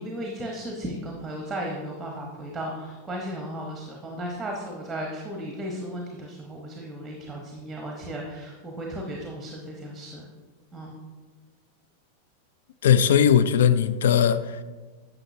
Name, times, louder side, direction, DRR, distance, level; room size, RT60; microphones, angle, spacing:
voice 1, 0.0-10.3 10.7-10.9, right 1 dB, 10° right, 1.0 m, -35 dB
voice 2, 12.8-14.6, left 8 dB, 60° left, 0.3 m, -19 dB
9.9 x 6.3 x 2.7 m
figure-of-eight pair, 90°, 0 cm